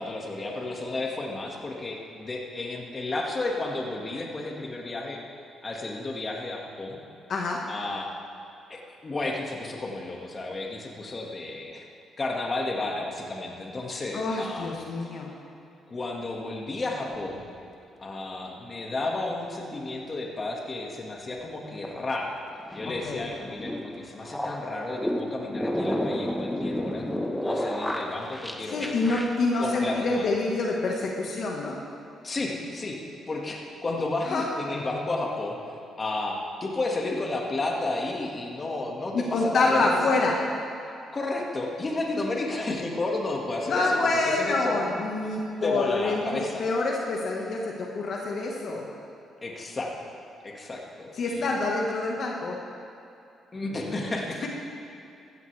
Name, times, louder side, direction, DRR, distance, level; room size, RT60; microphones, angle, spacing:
voice 1, 0.0-5.2 5.6-7.0 7.7-8.1 8.7-11.9 12.2-14.8 15.9-17.4 18.0-22.4 22.7-27.1 27.4-28.9 29.6-30.3 32.2-33.0 33.3-35.6 36.0-40.0 41.1-44.8 45.6-46.6 49.4-50.0 50.4-51.5 53.5-54.5, left 2 dB, 30° left, -1 dB, 2.0 m, -32 dB
voice 2, 7.3-7.6 14.1-15.3 22.8-23.2 28.7-31.8 34.3-34.4 39.1-40.4 43.7-48.8 51.2-52.6, left 3 dB, 60° left, -1 dB, 1.6 m, -26 dB
sound 1, 17.1-17.5 21.4-30.2, equal, 5° left, 1.3 m, -32 dB
15.5 x 14.0 x 3.5 m, 2.6 s
cardioid pair, 90°, 0 cm